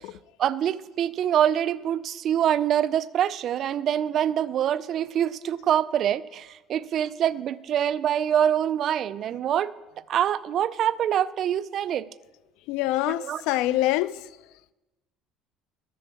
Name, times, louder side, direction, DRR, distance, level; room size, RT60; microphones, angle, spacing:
voice 1, 0.4-9.7 10.1-12.1 13.1-13.4, right 10 dB, 50° right, 0.4 m, -25 dB
voice 2, 12.7-14.2, left 16 dB, 80° left, 0.4 m, -25 dB
13.0 x 7.0 x 7.1 m
cardioid pair, 130°, 0 cm